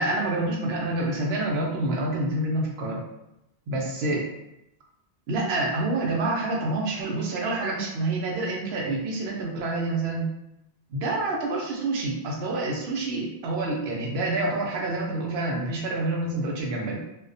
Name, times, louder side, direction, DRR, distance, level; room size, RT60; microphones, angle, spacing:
voice 1, 0.0-3.0 3.7-4.3 5.3-10.3 10.9-17.0, right 2 dB, 85° right, -1 dB, 0.9 m, -27 dB
2.3 x 2.1 x 2.5 m, 0.86 s
omnidirectional pair, 1.0 m